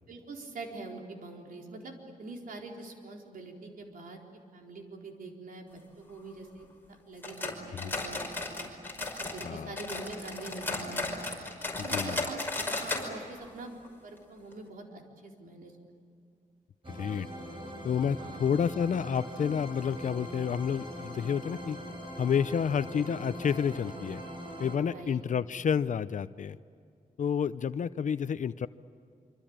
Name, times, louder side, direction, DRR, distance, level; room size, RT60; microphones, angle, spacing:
voice 1, 0.1-4.2 4.5-8.7 9.2-11.1 11.8-15.7 18.2-18.4 24.9-25.2, right 3 dB, 85° right, 1 dB, 4.2 m, -45 dB
sound 1, 7.2-9.5 9.8-13.1 13.4-13.5 13.8-13.9 14.5-14.6, left 2 dB, 15° left, 5.3 m, -34 dB
voice 2, 9.4-9.8 11.9-12.3 16.9-17.3 17.8-21.8 22.2-24.2 24.6-26.6 27.2-28.7, left 7 dB, 60° left, 14 dB, 0.6 m, -30 dB
sound 2, 16.8-24.8, equal, 35° right, 6.4 m, -42 dB
26.0 x 25.5 x 8.9 m, 2.3 s
wide cardioid pair, 105°, 14 cm